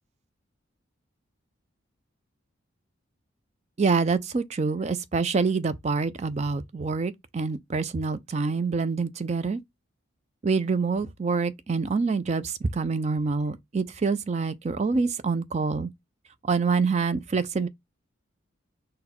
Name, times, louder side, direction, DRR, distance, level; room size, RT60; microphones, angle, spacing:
voice 1, 3.8-9.6 10.4-15.9 16.5-17.7, right 4 dB, 35° right, 0.4 m, -26 dB
4.0 x 2.1 x 4.2 m
head